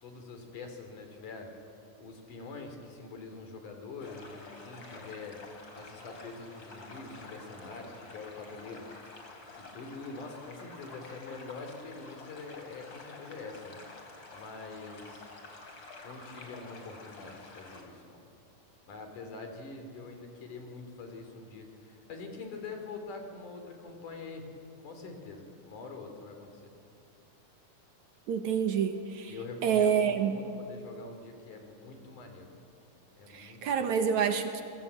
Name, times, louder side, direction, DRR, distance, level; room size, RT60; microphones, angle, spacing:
voice 1, 0.0-1.5 2.0-5.4 5.7-8.9 9.6-13.8 14.3-15.4 16.0-18.2 18.9-24.5 24.8-26.6 29.3-32.5 33.2-33.8, left 3 dB, 65° left, 5 dB, 4.6 m, -45 dB
sound 1, 4.0-17.8, left 3 dB, 35° left, 3.7 m, -49 dB
voice 2, 28.3-29.3 29.6-30.4 33.3-34.6, right 7 dB, 65° right, 7 dB, 2.4 m, -28 dB
29.0 x 21.5 x 8.4 m, 2.5 s
omnidirectional pair, 3.9 m